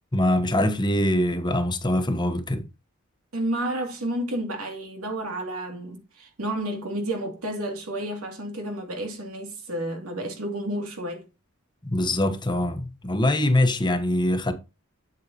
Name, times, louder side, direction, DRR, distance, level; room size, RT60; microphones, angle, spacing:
voice 1, 0.1-2.6 11.8-14.5, left 1 dB, 20° left, 1.1 m, -23 dB
voice 2, 3.3-11.3, right 1 dB, 85° right, 2.5 m, -31 dB
8.1 x 8.1 x 2.9 m
head